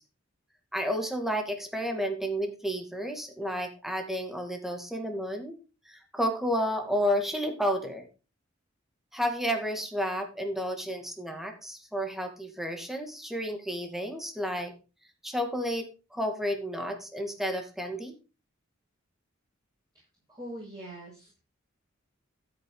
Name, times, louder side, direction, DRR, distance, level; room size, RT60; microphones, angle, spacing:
voice 1, 0.7-5.5 5.9-8.1 9.1-14.7 15.2-18.1, equal, ahead, 4 dB, 2.3 m, -31 dB
voice 2, 19.9-21.4, right 1 dB, 20° right, -6 dB, 7.1 m, -43 dB
13.0 x 8.5 x 3.9 m, 0.32 s
head